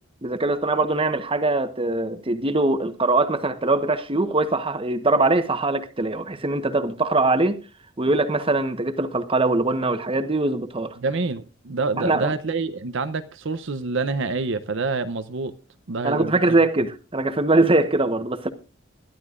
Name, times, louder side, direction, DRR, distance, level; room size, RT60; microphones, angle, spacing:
voice 1, 0.2-7.6 8.0-10.9 12.0-12.3 16.0-18.5, right 2 dB, 30° right, 1.1 m, -22 dB
voice 2, 11.0-15.5 15.9-16.6, right 3 dB, 65° right, 0.7 m, -27 dB
22.0 x 11.5 x 2.5 m
head